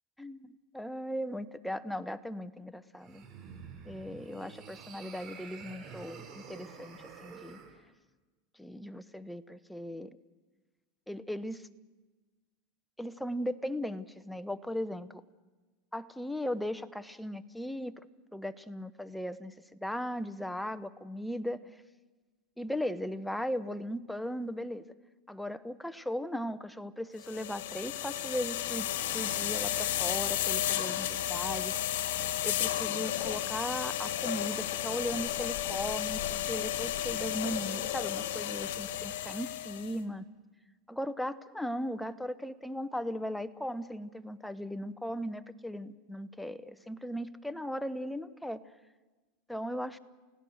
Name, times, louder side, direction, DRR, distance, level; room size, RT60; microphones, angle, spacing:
voice 1, 0.2-3.3 3.8-7.6 8.6-10.1 11.1-11.7 13.0-15.2 15.9-18.0 18.3-19.5 19.8-21.6 22.6-24.9 25.3-28.9 29.1-32.1 32.4-40.3 40.9-48.6 49.5-50.0, equal, 5° left, 13 dB, 0.9 m, -37 dB
sound 1, 2.9-7.7, right 6 dB, 40° right, 5.2 m, -49 dB
sound 2, 27.2-39.9, left 12 dB, 75° left, 1.9 m, -33 dB
29.5 x 17.0 x 6.5 m, 1.3 s
hypercardioid pair, 110°, 0 cm